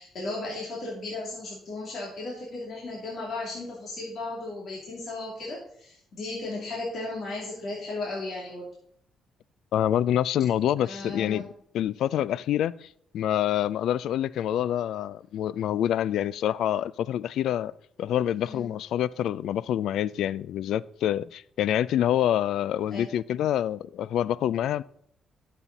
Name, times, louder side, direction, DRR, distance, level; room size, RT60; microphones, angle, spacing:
voice 1, 0.0-8.7 10.8-11.4 18.3-18.7 22.9-23.0, left 2 dB, 55° left, 2.8 m, -35 dB
voice 2, 9.7-12.9 13.1-17.7 18.0-24.8, left 11 dB, 75° left, 0.3 m, -26 dB
11.0 x 7.4 x 4.1 m
cardioid pair, 90°, 0 cm